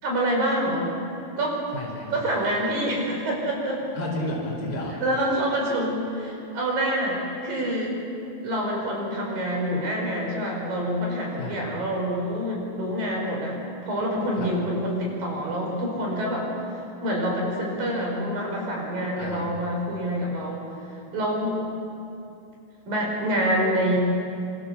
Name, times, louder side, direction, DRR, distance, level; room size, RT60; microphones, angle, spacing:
voice 1, 0.0-0.9 1.4-1.6 2.1-3.8 5.0-8.0 8.4-13.6 13.8-16.5 17.0-20.7 21.1-21.6 22.9-24.0, equal, 70° right, -1 dB, 7.1 m, -26 dB
voice 2, 1.7-2.2 3.9-5.0 11.4-11.7 14.4-14.5 19.1-19.5, left 1 dB, 25° left, -3 dB, 5.2 m, -32 dB
26.0 x 25.5 x 7.3 m, 2.7 s
omnidirectional pair, 4.1 m